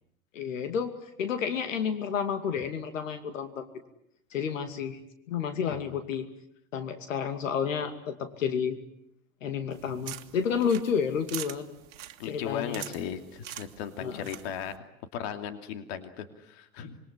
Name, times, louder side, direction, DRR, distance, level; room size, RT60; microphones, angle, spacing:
voice 1, 0.3-3.7 4.3-5.0 5.3-6.3 6.7-8.8 9.4-11.7 12.3-12.8 14.0-14.3, left 7 dB, 65° left, 8 dB, 2.7 m, -30 dB
voice 2, 5.6-6.0 12.2-14.7 15.1-17.0, left 8 dB, 50° left, 8 dB, 2.7 m, -37 dB
sound 1, 9.7-14.8, right 12 dB, 60° right, 2.0 m, -44 dB
27.0 x 22.5 x 9.9 m, 0.76 s
figure-of-eight pair, 100°, 41 cm